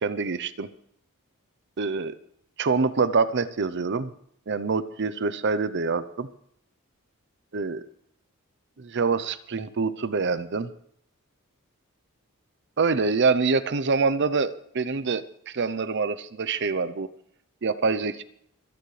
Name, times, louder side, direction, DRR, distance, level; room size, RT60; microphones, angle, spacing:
voice 1, 0.0-0.7 1.8-2.1 2.6-4.1 4.5-6.3 7.5-7.9 8.8-10.7 12.8-17.1 17.6-18.2, right 4 dB, 55° right, 13 dB, 0.7 m, -25 dB
26.5 x 9.3 x 3.3 m, 0.70 s
head